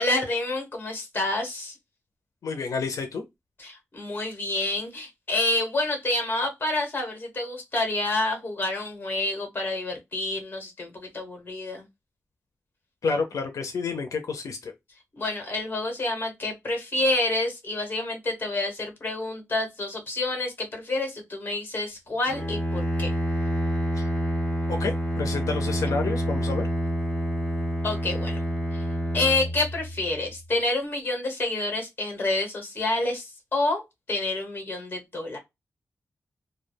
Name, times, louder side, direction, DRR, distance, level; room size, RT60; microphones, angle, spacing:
voice 1, 0.0-1.7 3.6-11.9 15.2-23.1 27.8-28.4 28.7-28.9 29.1-33.8 34.1-35.4, left 2 dB, 40° left, 1.0 m, -28 dB
voice 2, 2.4-3.2 13.0-14.7 24.0-24.1 24.7-26.7, left 4 dB, 85° left, 0.5 m, -29 dB
Bowed string instrument, 22.3-30.3, equal, 15° left, 0.8 m, -28 dB
2.2 x 2.2 x 3.2 m
wide cardioid pair, 160°, 6 cm